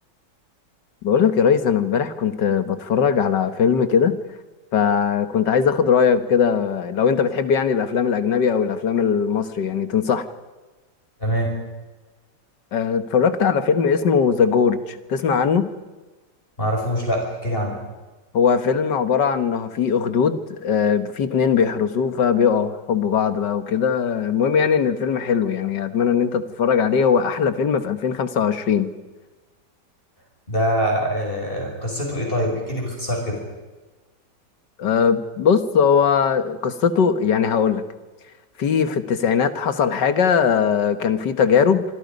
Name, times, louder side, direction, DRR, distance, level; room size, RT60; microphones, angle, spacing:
voice 1, 1.0-4.2 4.7-10.3 12.7-15.7 18.3-28.9 34.8-37.8 38.6-41.9, left 6 dB, 75° left, 10 dB, 2.0 m, -20 dB
voice 2, 11.2-11.5 16.6-17.8 30.5-33.4, equal, 30° left, -1 dB, 6.4 m, -24 dB
26.5 x 25.0 x 5.4 m, 1.2 s
omnidirectional pair, 1.9 m